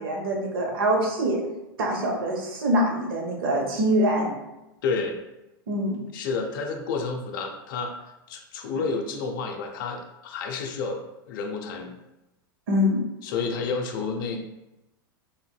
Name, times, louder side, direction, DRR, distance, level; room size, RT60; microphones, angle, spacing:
voice 1, 0.0-1.4 1.8-4.3 5.7-6.0 12.7-13.0, equal, 80° right, 0 dB, 0.8 m, -24 dB
voice 2, 4.8-5.2 6.1-8.0 8.3-11.0 11.3-11.9 13.2-14.4, left 4 dB, 65° left, 3 dB, 0.5 m, -30 dB
3.4 x 2.6 x 2.2 m, 0.95 s
hypercardioid pair, 105°, 12 cm